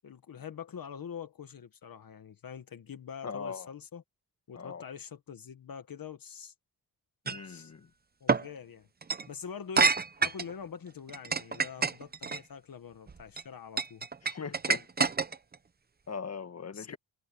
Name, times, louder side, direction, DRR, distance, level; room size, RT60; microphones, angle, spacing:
voice 1, 0.0-4.0 4.5-6.5 7.4-7.7 8.2-8.9 9.3-14.1 16.7-17.0, left 7 dB, 60° left, 1.5 m, -44 dB
voice 2, 3.2-3.7 4.5-4.8 7.2-7.9 14.2-15.1 16.1-17.0, left 5 dB, 40° left, 1.5 m, -40 dB
sound 1, 7.3-7.5 8.3-8.5 9.0-9.3 9.8-10.5 11.1-12.4 13.1-13.4 13.8-15.5, right 4 dB, 25° right, 0.7 m, -27 dB
wide cardioid pair, 175°, 38 cm